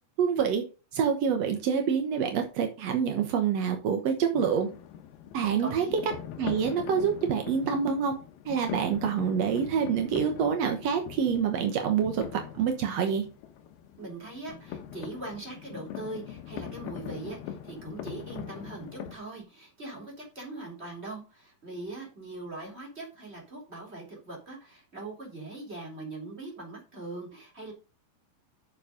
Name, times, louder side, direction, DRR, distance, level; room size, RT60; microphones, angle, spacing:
voice 1, 0.2-0.6 0.9-4.7 5.3-5.9 6.4-8.1 8.4-13.2, right 7 dB, 80° right, 5 dB, 1.5 m, -27 dB
sound 1, 4.3-19.2, left 9 dB, 75° left, 2.9 m, -42 dB
voice 2, 5.6-6.1 14.0-27.7, right 2 dB, 15° right, -1 dB, 3.4 m, -41 dB
8.1 x 7.0 x 5.2 m, 0.33 s
omnidirectional pair, 4.7 m